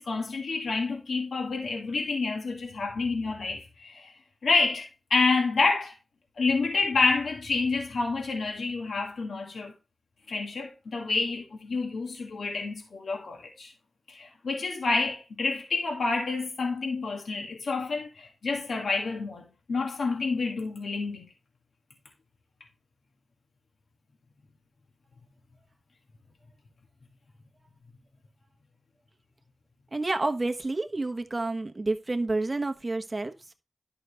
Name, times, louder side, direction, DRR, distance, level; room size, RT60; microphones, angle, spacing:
voice 1, 0.0-4.1 4.4-5.9 6.4-9.7 10.3-13.7 14.1-21.3, left 3 dB, 80° left, 2.4 m, -28 dB
voice 2, 29.9-33.5, right 2 dB, 30° right, 1.2 m, -29 dB
12.0 x 6.3 x 3.4 m
wide cardioid pair, 85°, 0 cm